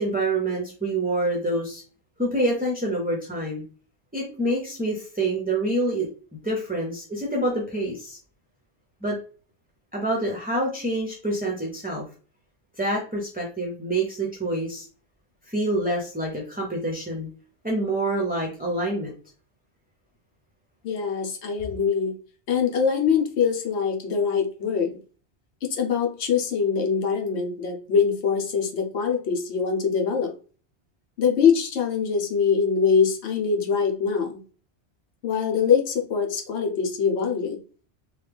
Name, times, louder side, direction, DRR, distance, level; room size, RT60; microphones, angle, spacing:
voice 1, 0.0-1.8 2.2-3.6 4.1-6.1 6.4-8.2 9.0-9.2 9.9-12.0 12.8-14.9 15.5-17.3 17.6-19.1, right 1 dB, 10° right, -1 dB, 0.5 m, -26 dB
voice 2, 20.8-22.2 22.5-24.9 25.6-30.3 31.2-34.4 35.2-37.6, left 6 dB, 80° left, 3 dB, 1.0 m, -23 dB
3.2 x 2.3 x 3.4 m, 0.38 s
omnidirectional pair, 1.1 m